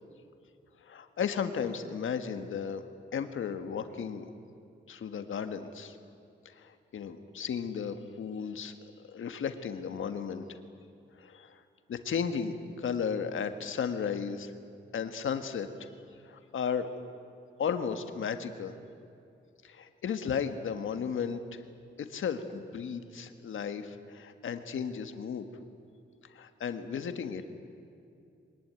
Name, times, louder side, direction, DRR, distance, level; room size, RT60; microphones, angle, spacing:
voice 1, 0.8-2.8 3.1-4.3 4.9-6.0 6.5-10.6 11.1-11.6 11.9-14.5 14.9-15.8 16.2-16.9 17.6-18.8 19.6-21.7 22.0-25.5 26.2-27.5, left 7 dB, 85° left, 8 dB, 1.6 m, -34 dB
23.5 x 19.5 x 9.5 m, 2.6 s
wide cardioid pair, 180°, 20 cm